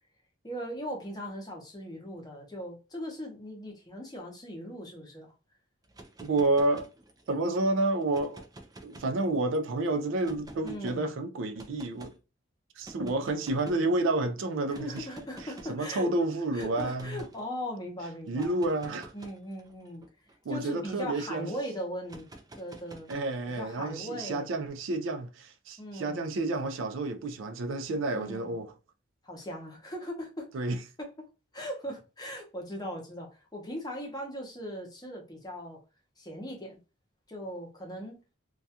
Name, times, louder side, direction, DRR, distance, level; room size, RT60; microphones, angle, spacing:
voice 1, 0.4-5.3 10.6-11.1 14.7-16.1 16.5-18.5 19.1-20.0 20.5-22.3 22.6-23.1 23.6-24.5 25.8-26.3 28.2-28.6 29.2-30.5 31.0-31.1 31.5-35.8 36.2-36.8 37.3-38.2, equal, 20° left, 0.7 m, -39 dB
sound 1, 5.8-7.4 8.0-9.6 10.2-11.0 11.6-12.2 12.8-13.9 14.7-15.8 16.6-17.4 18.3-21.1 22.0-23.6, right 1 dB, 20° right, 0.3 m, -49 dB
voice 2, 6.2-6.9 7.3-8.5 8.8-12.1 12.8-15.1 15.4-17.2 18.3-19.1 20.5-21.5 23.1-28.7 30.5-30.8, right 2 dB, 85° right, 0.4 m, -30 dB
2.3 x 2.2 x 2.7 m
head